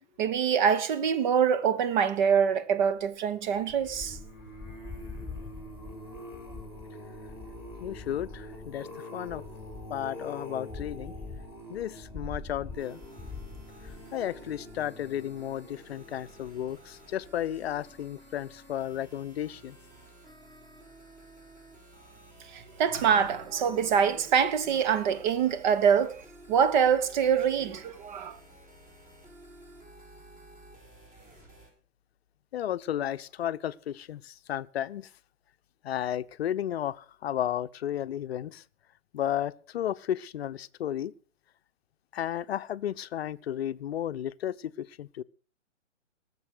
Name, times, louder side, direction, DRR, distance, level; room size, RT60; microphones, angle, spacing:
voice 1, 0.2-4.2 22.5-26.2 26.5-28.4, right 7 dB, 40° right, 1.2 m, -25 dB
sound 1, 3.5-16.8 17.3-17.7 17.9-18.0, left 2 dB, 5° right, 3.2 m, -43 dB
voice 2, 7.8-9.4 9.9-11.1 11.7-13.0 14.1-19.8 32.5-35.1 35.8-38.6 39.1-41.1 42.1-45.2, left 11 dB, 55° left, 0.7 m, -33 dB
sound 2, 12.8-31.7, right 1 dB, 20° right, 4.6 m, -53 dB
sound 3, 22.9-24.4, right 3 dB, 80° right, 3.1 m, -47 dB
19.0 x 7.0 x 6.4 m
hypercardioid pair, 135°, 37 cm